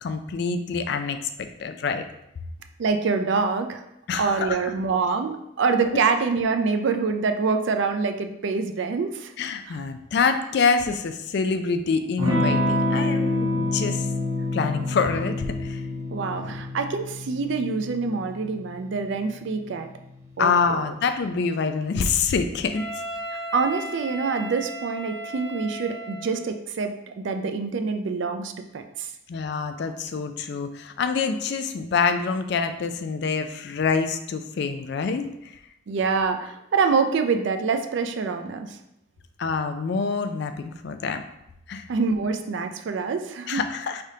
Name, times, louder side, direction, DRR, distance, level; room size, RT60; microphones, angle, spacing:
voice 1, 0.0-2.0 4.1-4.7 5.9-6.0 9.4-14.1 14.5-15.8 20.4-22.9 29.3-35.6 39.4-41.2 41.7-41.9 43.5-44.0, left 5 dB, 55° left, 8 dB, 0.3 m, -26 dB
voice 2, 2.8-3.8 4.2-9.3 16.1-19.9 20.4-20.9 23.5-29.1 35.9-38.8 41.9-43.6, right 4 dB, 60° right, 6 dB, 0.4 m, -25 dB
Electric guitar / Strum, 12.2-20.5, left 2 dB, 80° right, 1.2 m, -28 dB
Wind instrument woodwind instrument, 22.7-26.6, right 1 dB, ahead, 0.8 m, -36 dB
4.9 x 3.4 x 2.7 m, 0.83 s
head